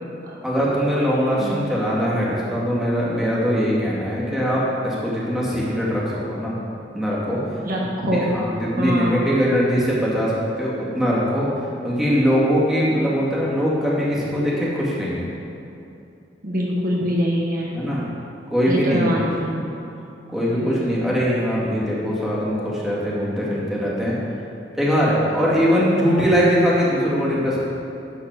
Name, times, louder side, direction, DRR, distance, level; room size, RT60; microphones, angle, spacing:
voice 1, 0.4-6.0 6.3-6.6 6.9-7.5 8.2-11.5 11.8-15.2 17.7-18.1 18.5-19.1 20.3-24.2 24.7-27.6, equal, ahead, -7 dB, 2.3 m, -21 dB
voice 2, 7.6-8.4 8.8-9.2 16.4-17.8 18.7-19.7 20.5-21.2, equal, 55° right, -3 dB, 1.4 m, -24 dB
11.5 x 4.7 x 7.5 m, 2.7 s
head